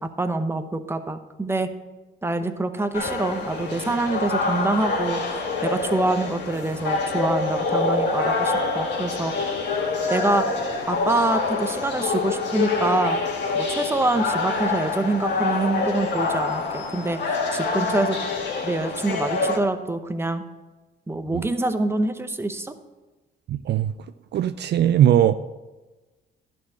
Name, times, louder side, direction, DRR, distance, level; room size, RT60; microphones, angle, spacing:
voice 1, 0.0-1.7 2.2-9.5 10.1-10.6 10.9-13.2 13.7-18.2 18.6-20.4 21.1-22.7, right 2 dB, 10° right, 9 dB, 0.8 m, -25 dB
sound 1, 2.9-19.6, left 3 dB, 60° left, 2.0 m, -26 dB
voice 2, 23.5-23.9 24.3-25.4, right 11 dB, 60° right, 12 dB, 0.4 m, -19 dB
11.5 x 4.5 x 7.4 m, 1.2 s
cardioid pair, 90°, 20 cm